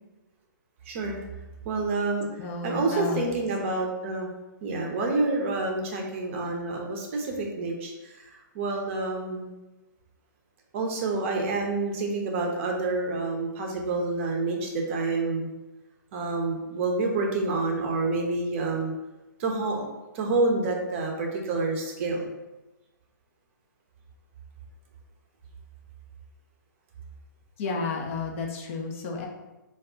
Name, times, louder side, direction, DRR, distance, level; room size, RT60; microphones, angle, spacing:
voice 1, 0.8-1.2 1.6-4.3 4.6-9.5 10.7-15.5 16.1-18.9 19.4-19.9 20.1-22.3, right 3 dB, 35° right, 1 dB, 0.5 m, -28 dB
voice 2, 2.4-3.2 27.6-29.3, left 4 dB, 35° left, 1 dB, 0.5 m, -32 dB
2.3 x 2.3 x 3.6 m, 1.1 s
figure-of-eight pair, 130°, 11 cm